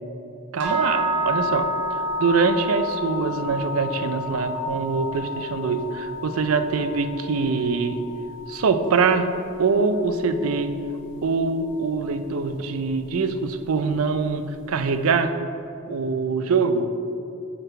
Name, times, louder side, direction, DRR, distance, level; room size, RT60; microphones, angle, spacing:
voice 1, 0.5-1.7 2.2-8.0 8.5-9.3 9.6-10.7 11.2-15.3 15.9-16.9, right 4 dB, 80° right, 9 dB, 0.4 m, -23 dB
sound 1, 0.6-10.7, left 1 dB, 60° right, 1.2 m, -30 dB
6.7 x 4.0 x 4.2 m, 2.7 s
head